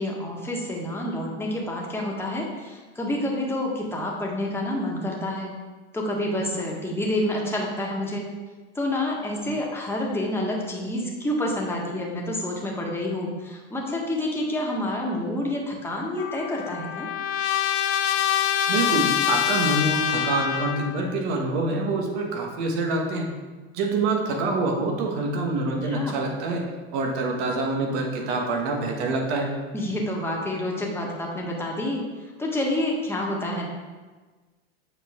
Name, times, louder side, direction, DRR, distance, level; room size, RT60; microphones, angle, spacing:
voice 1, 0.0-5.5 5.9-8.2 8.7-17.1 25.8-26.2 29.7-32.0 32.4-33.7, left 1 dB, 5° left, -2 dB, 1.4 m, -28 dB
Trumpet, 16.2-21.1, left 10 dB, 70° left, 0.6 m, -25 dB
voice 2, 18.7-23.3 23.7-26.6 26.9-29.5, right 2 dB, 70° right, 1 dB, 1.4 m, -26 dB
7.1 x 4.6 x 3.6 m, 1.3 s
supercardioid pair, 110°, 34 cm